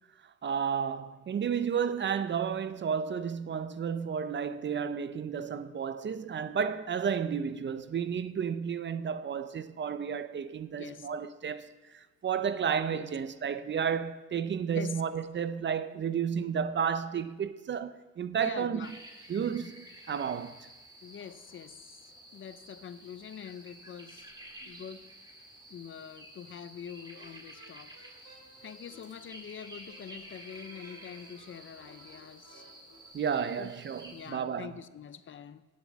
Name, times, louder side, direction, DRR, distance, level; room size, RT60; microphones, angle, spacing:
voice 1, 0.2-18.9 19.3-20.7 24.6-24.7 33.1-34.7, right 7 dB, 40° right, 0.5 m, -32 dB
voice 2, 10.8-11.1 12.9-13.1 14.7-15.0 18.3-18.9 19.6-19.7 21.0-24.4 24.6-25.2 25.7-32.6 33.6-33.7 34.1-35.7, left 8 dB, 40° left, 0.5 m, -45 dB
sound 1, 18.8-34.3, right 1 dB, 15° right, 1.9 m, -51 dB
sound 2, 27.1-33.1, right 1 dB, 85° right, 4.2 m, -58 dB
9.0 x 7.1 x 7.4 m
cardioid pair, 90°, 30 cm